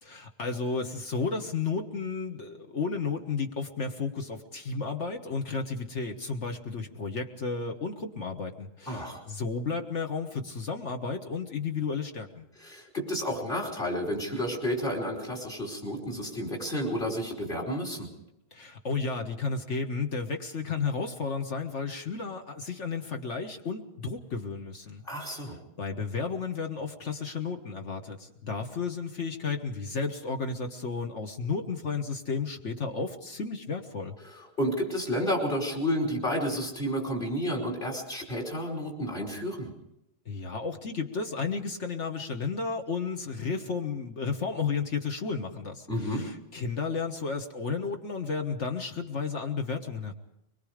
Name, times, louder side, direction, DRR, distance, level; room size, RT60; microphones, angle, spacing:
voice 1, 0.0-12.5 18.5-34.1 40.2-50.1, left 4 dB, 60° left, 4 dB, 1.6 m, -33 dB
voice 2, 8.9-9.2 12.6-18.1 25.0-25.6 34.2-39.7 45.9-46.2, equal, 40° left, 1 dB, 5.4 m, -31 dB
24.0 x 22.5 x 5.1 m, 0.82 s
omnidirectional pair, 1.4 m